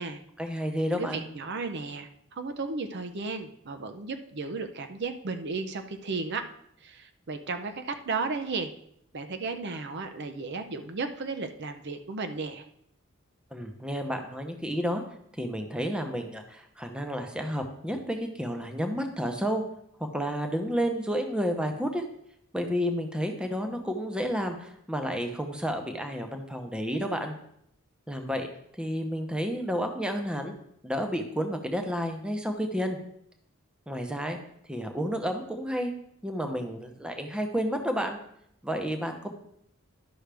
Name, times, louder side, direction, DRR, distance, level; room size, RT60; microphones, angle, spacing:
voice 1, 0.4-1.3 13.5-15.0 15.4-19.6 20.1-22.0 22.5-27.4 28.1-28.5 28.8-30.5 30.8-33.0 33.9-34.4 34.7-35.9 36.2-38.2 38.6-39.3, equal, 5° right, 5 dB, 0.8 m, -31 dB
voice 2, 0.9-6.5 6.8-8.7 9.1-12.7, right 4 dB, 55° right, 8 dB, 0.6 m, -34 dB
11.5 x 6.2 x 3.4 m, 0.72 s
head